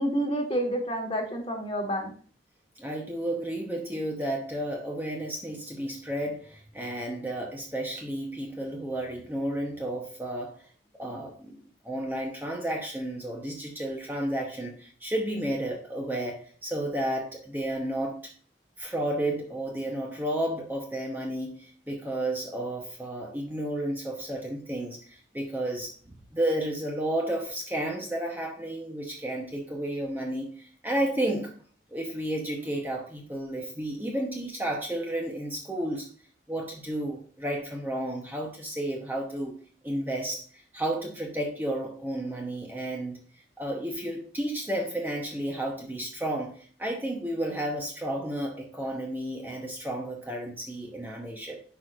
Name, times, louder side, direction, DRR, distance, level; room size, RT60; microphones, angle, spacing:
voice 1, 0.0-2.1, equal, 30° left, 2 dB, 1.4 m, -29 dB
voice 2, 2.8-10.5 11.0-18.3 18.8-25.9 26.3-31.5 31.9-36.1 36.5-39.6 39.8-43.2 43.6-51.6, right 1 dB, 10° right, 0 dB, 0.9 m, -32 dB
10.0 x 4.9 x 2.5 m, 0.44 s
head